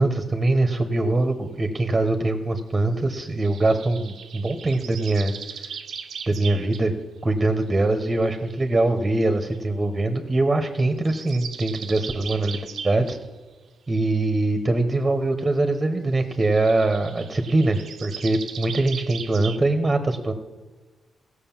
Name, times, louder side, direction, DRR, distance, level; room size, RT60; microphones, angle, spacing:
voice 1, 0.0-5.3 6.3-6.9 7.2-13.2 13.9-20.3, right 2 dB, 25° right, 7 dB, 1.2 m, -23 dB
sound 1, 3.4-6.8 7.4-8.5 9.5-9.6 11.0-13.2 16.4-19.6, right 7 dB, 75° right, 0.8 m, -38 dB
15.5 x 6.6 x 7.4 m, 1.3 s
cardioid pair, 80°, 0 cm